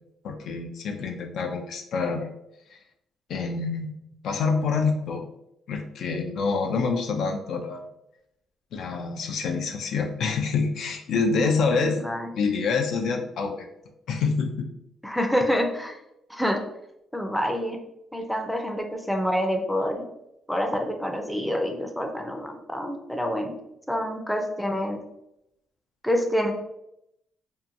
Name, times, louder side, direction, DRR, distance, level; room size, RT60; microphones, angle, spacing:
voice 1, 0.2-2.3 3.3-4.0 4.2-5.2 5.7-7.8 8.7-12.0 12.3-13.7 14.1-14.7, left 4 dB, 75° left, 3 dB, 0.3 m, -26 dB
voice 2, 11.7-12.3 15.0-16.0 16.3-16.6 17.1-17.8 18.1-20.1 20.5-23.6 23.9-25.0 26.0-26.5, equal, ahead, 3 dB, 0.4 m, -27 dB
2.7 x 2.2 x 2.5 m, 0.83 s
cardioid pair, 90°, 0 cm